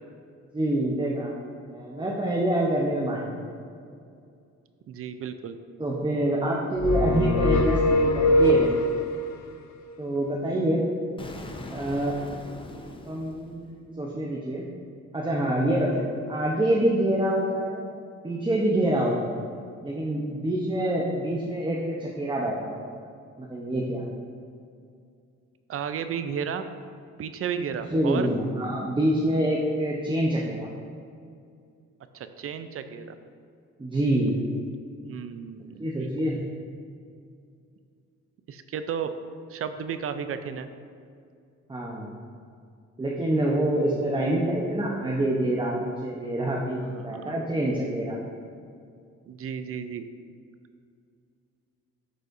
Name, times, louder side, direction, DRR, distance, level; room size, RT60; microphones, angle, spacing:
voice 1, 0.5-1.3 1.7-3.5 5.8-8.8 10.0-10.8 11.7-12.1 13.0-14.7 15.1-17.8 18.2-19.4 19.8-22.9 23.4-24.1 27.9-30.7 33.8-34.4 35.8-36.4 41.7-42.1 43.0-48.2, right 1 dB, 15° right, -3 dB, 0.8 m, -26 dB
voice 2, 4.9-5.6 25.7-26.6 27.2-28.3 32.1-33.2 35.1-35.9 38.5-39.1 39.5-40.7 46.9-47.3 49.3-50.1, right 7 dB, 50° right, 9 dB, 0.5 m, -33 dB
sound 1, 6.8-9.2, left 1 dB, 65° left, 0.6 m, -22 dB
Explosion, 11.2-14.1, left 2 dB, 15° left, 0.6 m, -41 dB
11.0 x 4.1 x 2.6 m, 2.3 s
cardioid pair, 90°, 30 cm